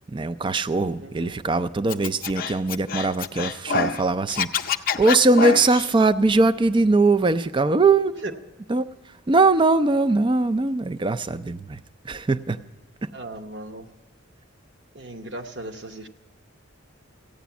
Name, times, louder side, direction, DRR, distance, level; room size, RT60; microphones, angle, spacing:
voice 1, 0.1-8.1 8.7-11.8 12.0-12.6 13.0-13.1, right 3 dB, 25° right, 12 dB, 0.3 m, -21 dB
voice 2, 1.0-1.4 8.2-8.3 13.1-13.9 14.9-16.1, right 1 dB, 55° right, 4 dB, 0.9 m, -37 dB
Scratching (performance technique), 1.9-4.0 4.3-5.9, left 5 dB, 45° left, 0.5 m, -26 dB
14.5 x 9.3 x 7.0 m, 1.2 s
head